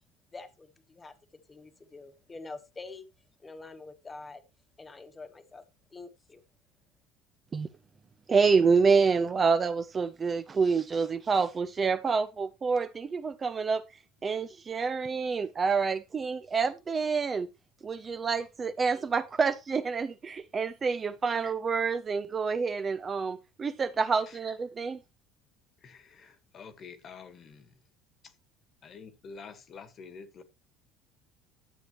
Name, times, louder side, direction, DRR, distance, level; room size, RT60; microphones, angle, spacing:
voice 1, 0.3-3.1 3.4-4.4 4.8-5.6 5.9-6.4, left 3 dB, 15° left, 1.3 m, -46 dB
voice 2, 8.3-13.8 14.2-17.5 17.8-25.0, right 5 dB, 20° right, 0.5 m, -27 dB
voice 3, 25.8-27.7 28.8-30.4, left 5 dB, 30° left, 1.5 m, -48 dB
12.5 x 7.8 x 3.0 m
cardioid pair, 165°, 0 cm